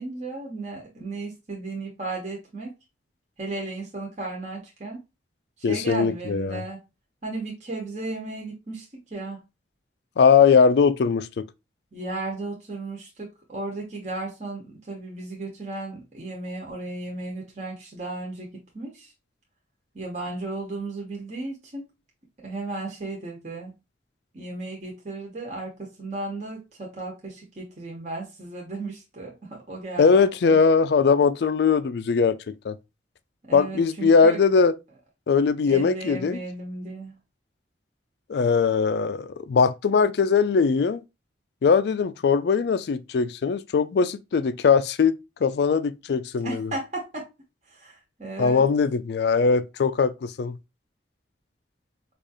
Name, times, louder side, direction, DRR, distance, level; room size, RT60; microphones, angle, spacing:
voice 1, 0.0-2.7 3.4-5.0 5.6-6.8 7.2-9.4 11.9-19.1 19.9-21.9 22.4-23.7 24.3-30.6 33.5-34.4 35.7-37.1 46.4-47.2 47.7-48.6, right 2 dB, 40° right, 0.9 m, -35 dB
voice 2, 5.6-6.6 10.2-11.5 30.0-32.8 33.5-34.7 35.3-36.4 38.3-41.0 41.6-45.1 45.4-46.7 48.4-50.6, left 5 dB, 65° left, 0.3 m, -20 dB
4.8 x 2.4 x 2.6 m
head